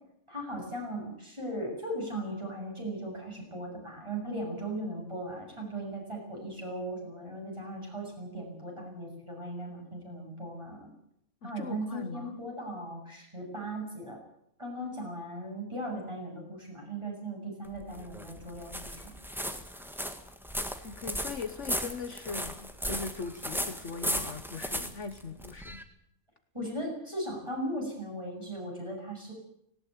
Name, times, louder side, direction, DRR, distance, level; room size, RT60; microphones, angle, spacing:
voice 1, 0.3-10.9 11.4-14.2 14.6-19.1 26.5-29.3, right 1 dB, 20° right, 0 dB, 7.9 m, -38 dB
voice 2, 11.4-12.4 20.8-25.9, left 4 dB, 55° left, 8 dB, 1.5 m, -40 dB
sound 1, 17.6-25.8, equal, ahead, 1.7 m, -36 dB
18.5 x 18.0 x 9.2 m, 0.76 s
omnidirectional pair, 1.5 m